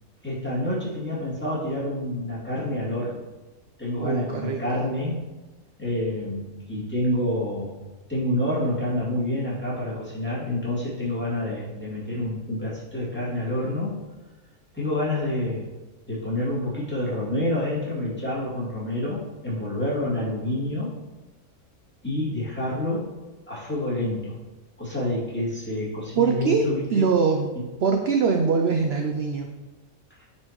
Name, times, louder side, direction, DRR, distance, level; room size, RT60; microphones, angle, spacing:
voice 1, 0.2-3.2 3.8-5.2 5.8-7.8 8.1-14.0 14.7-15.7 16.1-20.9 22.0-23.1 23.5-24.3 24.8-27.1 30.2-30.3, left 1 dB, 5° left, -8 dB, 2.3 m, -28 dB
voice 2, 4.0-4.6 26.2-27.5 27.8-29.5, right 5 dB, 60° right, 4 dB, 0.7 m, -23 dB
9.6 x 4.4 x 3.0 m, 1.2 s
omnidirectional pair, 1.5 m